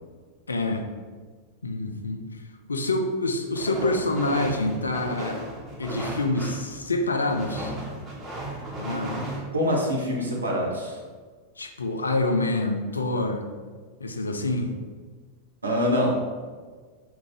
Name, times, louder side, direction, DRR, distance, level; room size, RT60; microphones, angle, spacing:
voice 1, 0.5-0.8 1.6-2.4 2.7-5.4 5.8-7.7 8.8-9.3 11.6-13.5 14.0-14.7, left 2 dB, 75° left, 4 dB, 0.3 m, -27 dB
sound 1, 3.6-9.4, right 1 dB, 15° right, 1.1 m, -35 dB
voice 2, 9.5-11.0 15.6-16.2, equal, 80° right, -2 dB, 0.7 m, -25 dB
3.0 x 2.4 x 3.6 m, 1.5 s
figure-of-eight pair, 90°, 0 cm